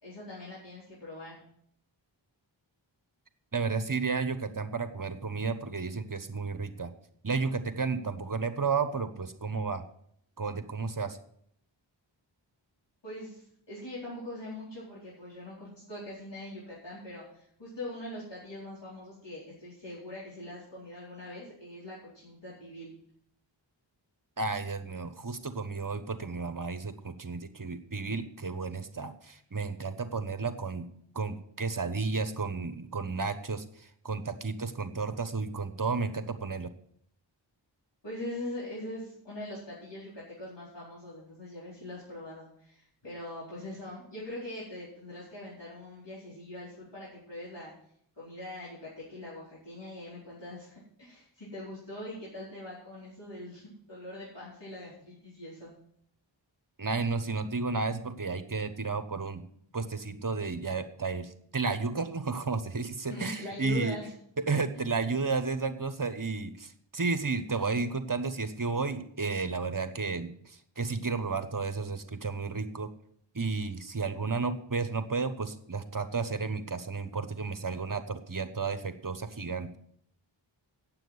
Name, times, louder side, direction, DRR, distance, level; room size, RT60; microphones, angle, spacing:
voice 1, 0.0-1.4 13.0-22.9 38.0-47.7 48.1-55.7 63.1-64.1, left 1 dB, 65° left, -9 dB, 4.5 m, -42 dB
voice 2, 3.5-6.9 7.2-9.8 10.4-11.2 24.4-30.9 31.1-36.7 56.8-59.4 59.7-64.0 64.5-72.9 73.3-79.8, right 4 dB, 45° right, 10 dB, 1.1 m, -32 dB
9.0 x 7.7 x 8.0 m, 0.67 s
wide cardioid pair, 45°, 47 cm